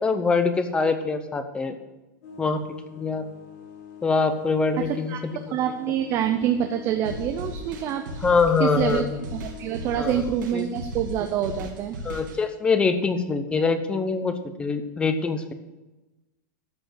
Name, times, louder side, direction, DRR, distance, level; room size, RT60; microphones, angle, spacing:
voice 1, 0.0-1.8 2.4-2.6 3.0-3.2 4.0-5.2 8.2-9.1 10.0-10.2 10.5-10.6 12.0-15.5, left 4 dB, 10° left, 9 dB, 0.7 m, -24 dB
sound 1, 2.2-10.0, left 9 dB, 50° left, 3.2 m, -44 dB
voice 2, 4.8-5.2 5.5-8.2 8.6-9.0 9.3-12.0, right 10 dB, 25° right, 6 dB, 0.6 m, -26 dB
sound 2, 7.0-12.4, equal, 90° right, 2.8 m, -36 dB
13.0 x 5.0 x 7.6 m, 1.1 s
supercardioid pair, 160°, 11 cm